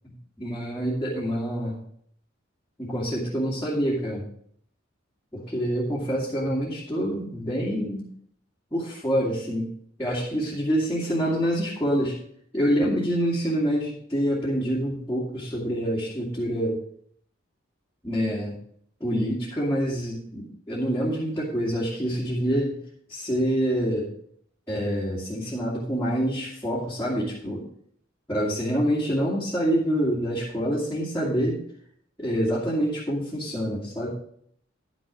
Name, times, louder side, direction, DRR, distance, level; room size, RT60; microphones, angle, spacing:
voice 1, 0.4-1.8 2.8-4.2 5.3-8.0 8.7-9.7 10.0-12.2 12.5-16.8 18.0-18.6 19.0-22.8 23.1-24.1 24.7-27.6 28.3-31.6 32.2-34.1, equal, 15° left, -8 dB, 2.3 m, -26 dB
11.5 x 6.3 x 5.2 m, 0.63 s
head